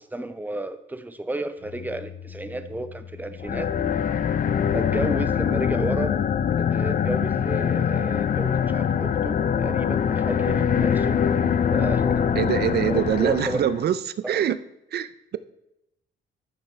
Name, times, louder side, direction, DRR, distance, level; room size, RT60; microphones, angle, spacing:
voice 1, 0.0-3.8 4.7-6.2 6.5-11.3 11.7-12.2 12.9-13.7 14.2-14.5, right 2 dB, 10° right, 10 dB, 0.7 m, -32 dB
sound 1, 1.6-7.0, left 8 dB, 70° left, 0.9 m, -40 dB
sound 2, 3.4-13.9, left 7 dB, 45° left, 0.5 m, -23 dB
voice 2, 12.4-14.0 14.3-14.6 14.9-15.4, right 10 dB, 55° right, 14 dB, 0.5 m, -24 dB
13.0 x 5.9 x 3.2 m, 0.84 s
cardioid pair, 90°, 20 cm